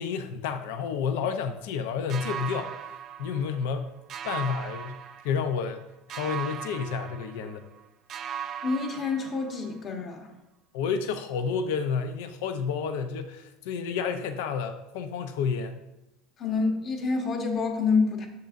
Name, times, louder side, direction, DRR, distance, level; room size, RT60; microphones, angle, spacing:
voice 1, 0.0-2.7 3.2-3.9 4.2-5.8 6.1-7.6 10.7-15.8, left 6 dB, 85° left, 8 dB, 0.5 m, -30 dB
sound 1, 2.1-3.8 4.1-5.7 6.1-7.8 8.1-9.8, right 8 dB, 40° right, 0.4 m, -38 dB
voice 2, 8.6-10.3 16.4-18.3, left 4 dB, 35° left, 3 dB, 1.1 m, -27 dB
6.9 x 6.5 x 2.5 m, 0.92 s
supercardioid pair, 125°, 0 cm